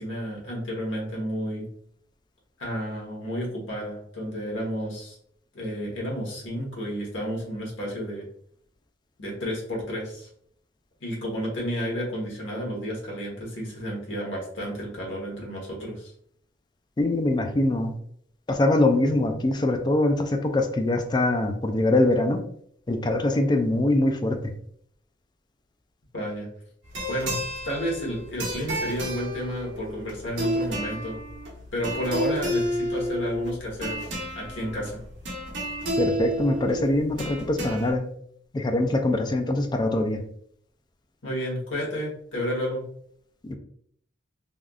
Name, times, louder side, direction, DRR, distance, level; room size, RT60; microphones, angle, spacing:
voice 1, 0.0-1.7 2.6-5.2 5.5-8.2 9.2-10.3 11.0-16.1 26.1-26.5 27.1-27.4 27.6-31.2 31.7-35.0 41.2-42.8, equal, 85° left, -3 dB, 1.2 m, -31 dB
voice 2, 17.0-17.9 18.5-22.4 22.9-24.5 36.0-38.1 38.5-40.2 43.4-43.5, left 2 dB, 25° left, 5 dB, 0.3 m, -23 dB
sound 1, 26.8-37.9, equal, 85° right, 1.0 m, -31 dB
3.4 x 2.4 x 2.4 m, 0.65 s
head